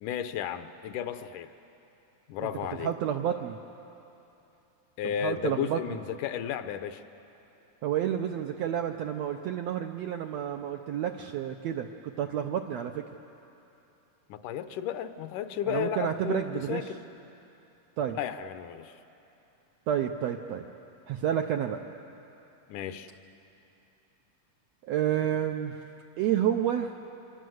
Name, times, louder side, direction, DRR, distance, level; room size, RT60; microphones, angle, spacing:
voice 1, 0.0-1.5 2.3-2.9 5.0-7.0 14.3-17.0 18.2-18.9 22.7-23.1, left 9 dB, 75° left, 10 dB, 2.2 m, -33 dB
voice 2, 2.8-3.6 5.2-6.0 7.8-13.1 15.7-16.9 18.0-18.2 19.9-20.7 21.1-21.9 24.8-25.8 26.2-27.0, right 10 dB, 80° right, 4 dB, 1.5 m, -30 dB
25.5 x 25.0 x 7.8 m, 2.9 s
omnidirectional pair, 3.8 m